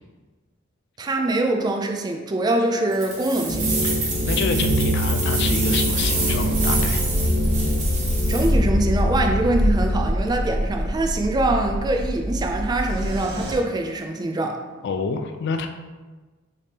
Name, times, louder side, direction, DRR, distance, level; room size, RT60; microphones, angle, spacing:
voice 1, 1.0-3.7 8.3-14.6, right 2 dB, 20° right, 3 dB, 0.3 m, -24 dB
sound 1, 2.9-8.5, right 3 dB, 35° right, 1.1 m, -28 dB
sound 2, 3.5-10.0, left 1 dB, 5° right, 1.0 m, -24 dB
voice 2, 3.8-7.0 14.8-15.7, left 5 dB, 55° left, 6 dB, 0.3 m, -28 dB
sound 3, 5.9-13.6, equal, 55° right, 0.8 m, -25 dB
5.0 x 3.3 x 2.8 m, 1.3 s
head